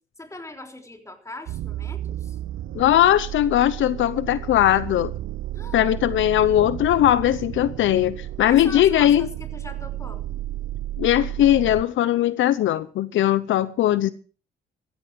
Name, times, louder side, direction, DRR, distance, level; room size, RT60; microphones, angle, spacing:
voice 1, 0.2-2.4 5.5-6.0 8.4-10.3, left 2 dB, 15° left, 5 dB, 3.6 m, -40 dB
sound 1, 1.5-11.8, right 14 dB, 75° right, 0.7 m, -33 dB
voice 2, 2.7-5.1 5.7-9.3 11.0-14.1, left 12 dB, 75° left, 16 dB, 0.8 m, -19 dB
15.5 x 14.5 x 4.8 m, 0.37 s
cardioid pair, 90°, 20 cm